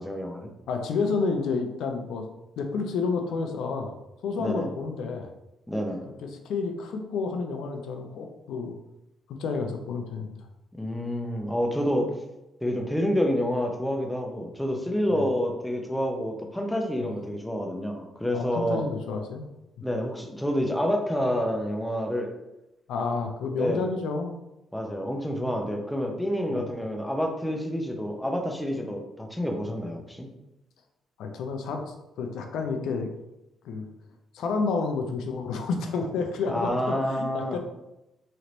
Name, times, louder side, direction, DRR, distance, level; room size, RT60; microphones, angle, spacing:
voice 1, 0.0-0.5 4.4-4.7 5.7-6.0 10.7-12.1 12.6-18.8 19.8-22.3 23.6-23.9 24.7-30.3 36.5-37.6, equal, 5° left, 2 dB, 0.7 m, -28 dB
voice 2, 0.7-2.3 2.6-3.9 4.2-5.3 6.2-8.8 9.4-10.3 15.1-15.3 17.0-17.1 18.3-19.5 22.9-24.4 26.5-26.6 31.2-33.1 33.6-33.9 34.3-37.6, left 4 dB, 80° left, 4 dB, 0.6 m, -30 dB
3.2 x 2.9 x 3.9 m, 0.92 s
cardioid pair, 90°, 0 cm